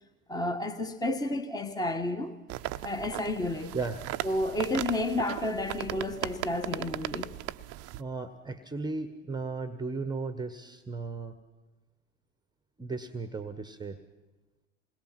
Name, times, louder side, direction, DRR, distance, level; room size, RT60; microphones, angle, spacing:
voice 1, 0.3-2.4 2.8-3.7 4.2-7.3, left 1 dB, 10° left, 1.5 m, -31 dB
sound 1, 2.5-8.0, right 15 dB, 40° right, 0.7 m, -37 dB
voice 2, 8.0-11.4 12.8-14.0, right 3 dB, 10° right, 1.2 m, -35 dB
28.0 x 21.0 x 6.0 m
hypercardioid pair, 85°, 39 cm